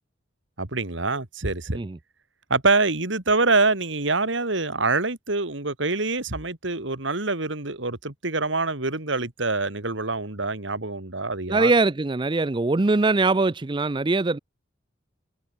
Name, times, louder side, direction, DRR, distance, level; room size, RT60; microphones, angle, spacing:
voice 1, 0.6-1.8 2.5-11.7, right 3 dB, 65° right, 2.7 m, -25 dB
voice 2, 11.5-14.4, right 3 dB, 25° right, 0.5 m, -22 dB
head